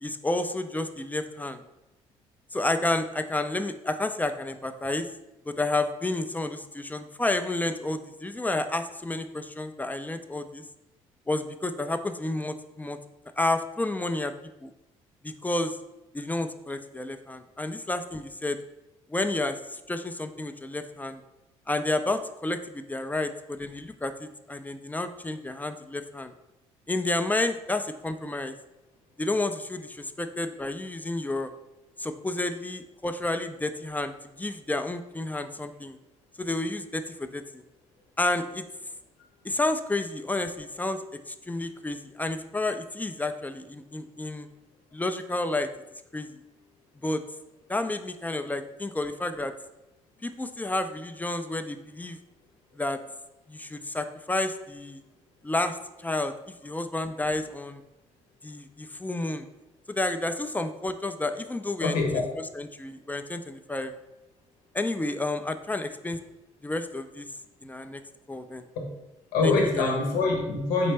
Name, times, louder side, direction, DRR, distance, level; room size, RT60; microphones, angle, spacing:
voice 1, 0.0-1.6 2.5-5.1 5.5-10.6 11.3-13.0 13.4-14.3 14.6-14.7 15.2-15.8 16.1-18.6 19.1-21.2 21.7-26.3 26.9-28.6 29.2-31.5 32.0-36.0 36.4-37.4 38.2-38.6 39.4-44.5 44.9-45.7 46.1-46.4 47.0-47.2 47.7-49.5 50.2-52.2 52.8-53.0 53.5-55.0 55.4-56.3 56.6-57.8 58.4-59.5 59.9-62.2 62.5-63.9 64.7-66.2 66.6-67.3 67.6-68.0 68.3-68.7 69.4-70.0, left 2 dB, 10° left, 9 dB, 0.3 m, -30 dB
voice 2, 61.8-62.4 68.8-68.9 69.3-70.9, left 3 dB, 75° left, 2 dB, 0.8 m, -25 dB
4.2 x 3.2 x 3.2 m, 0.95 s
hypercardioid pair, 60°, 15 cm